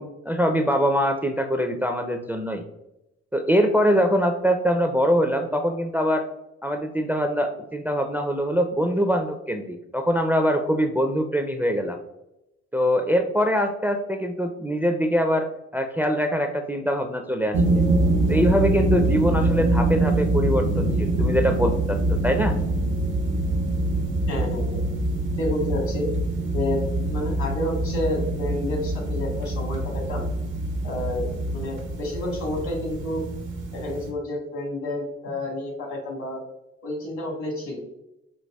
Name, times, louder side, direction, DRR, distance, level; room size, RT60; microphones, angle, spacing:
voice 1, 0.0-2.6 3.3-6.2 6.6-12.0 12.7-15.5 15.7-17.8 18.3-22.6, equal, 5° right, 6 dB, 0.4 m, -23 dB
sound 1, 17.5-34.1, right 2 dB, 85° right, 0.8 m, -24 dB
voice 2, 24.3-24.8 25.4-26.1 26.5-30.2 30.8-33.2 33.7-36.4 36.8-37.8, left 1 dB, 65° left, 1 dB, 1.3 m, -30 dB
4.0 x 2.8 x 2.2 m, 0.89 s
hypercardioid pair, 50°, 31 cm